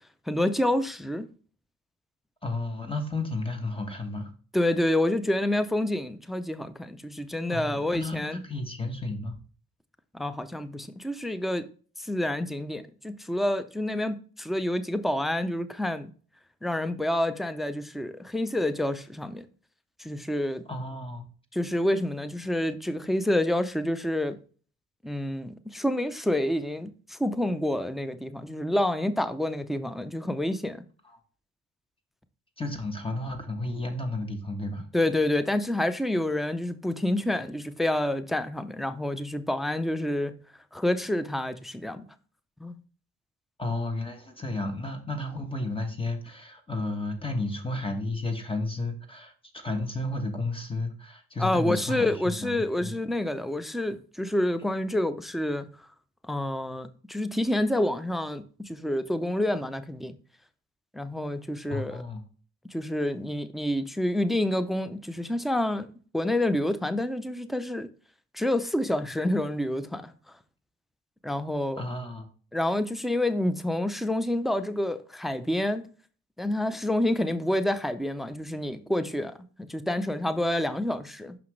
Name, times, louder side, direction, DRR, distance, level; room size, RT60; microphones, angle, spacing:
voice 1, 0.3-1.3 4.5-8.4 10.1-11.7 12.0-16.1 16.6-19.5 20.0-20.6 21.5-24.4 25.0-30.8 34.9-40.3 40.7-42.0 42.6-42.8 51.4-55.7 56.3-60.2 60.9-62.0 62.7-65.9 66.1-67.9 68.3-70.1 71.2-71.8 72.5-75.9 76.4-81.4, left 1 dB, ahead, 0.5 m, -28 dB
voice 2, 2.4-4.3 7.5-9.3 20.7-21.3 32.6-34.9 43.6-52.9 61.7-62.2 71.7-72.3, left 2 dB, 20° left, 1.2 m, -32 dB
6.0 x 5.7 x 3.2 m
cardioid pair, 90°, 30 cm